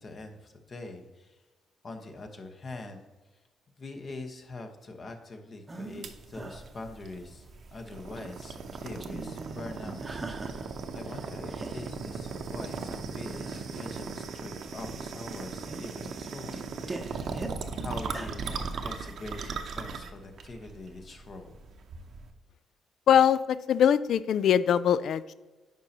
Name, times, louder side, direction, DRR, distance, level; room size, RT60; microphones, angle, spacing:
voice 1, 0.0-1.4 1.8-3.0 3.8-7.4 7.7-10.0 10.4-16.6 17.3-17.4 17.8-21.6, left 2 dB, 45° left, 5 dB, 1.0 m, -43 dB
sound 1, 5.7-6.1 6.3-7.4 7.8-8.5 8.7-10.8 11.0-12.0 12.5-12.6 13.2-13.8 14.5-14.8 15.1-17.6 18.0-18.4, right 2 dB, 20° right, 0.8 m, -42 dB
sound 2, 6.0-22.3, right 5 dB, 60° right, 0.8 m, -38 dB
voice 2, 23.1-25.3, left 9 dB, 70° left, 16 dB, 0.3 m, -22 dB
9.3 x 5.3 x 2.9 m, 1.2 s
cardioid pair, 90°, 0 cm